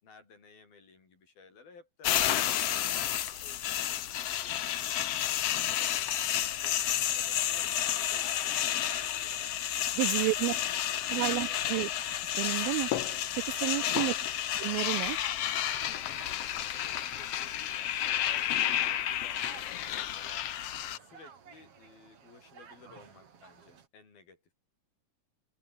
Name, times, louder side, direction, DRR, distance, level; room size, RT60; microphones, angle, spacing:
voice 1, 0.0-4.0 4.4-6.8 7.1-11.6 13.6-14.2 16.5-20.5 21.0-24.5, left 4 dB, 85° left, 8.6 m, -57 dB
sound 1, 2.0-21.0, left 11 dB, 60° left, 1.7 m, -31 dB
sound 2, 6.0-23.9, right 6 dB, 45° right, 3.1 m, -55 dB
voice 2, 10.0-10.5 11.1-11.9 12.4-12.9 13.6-14.1 14.6-15.2, right 21 dB, 85° right, 2.4 m, -30 dB
open air
omnidirectional pair, 4.1 m